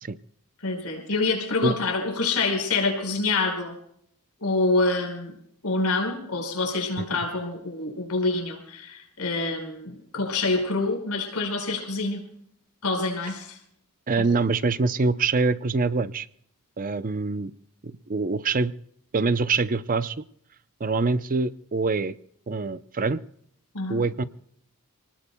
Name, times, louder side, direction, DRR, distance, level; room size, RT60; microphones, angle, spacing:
voice 1, 0.6-3.7 4.4-5.3 5.6-12.2 12.8-13.6 14.2-14.3 23.7-24.0, left 3 dB, 85° left, 3 dB, 5.1 m, -26 dB
voice 2, 14.1-16.3 16.8-17.5 17.8-18.7 19.1-20.2 20.8-22.2 22.5-23.2 23.9-24.2, right 4 dB, 40° right, 13 dB, 0.6 m, -25 dB
28.5 x 19.5 x 2.3 m, 0.71 s
head